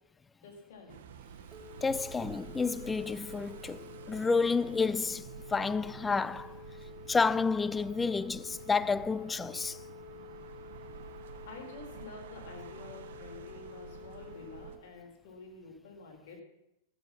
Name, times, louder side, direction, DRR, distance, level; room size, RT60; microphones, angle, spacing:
voice 1, 0.4-1.0 11.4-16.4, left 3 dB, 65° left, 4.3 m, -49 dB
sound 1, 0.9-14.8, right 8 dB, 80° right, 1.1 m, -49 dB
Telephone, 1.4-14.7, left 9 dB, 10° right, 1.6 m, -50 dB
voice 2, 1.8-6.6 7.1-9.8, left 4 dB, 10° left, 0.3 m, -30 dB
14.5 x 8.1 x 5.9 m
supercardioid pair, 135°, 0 cm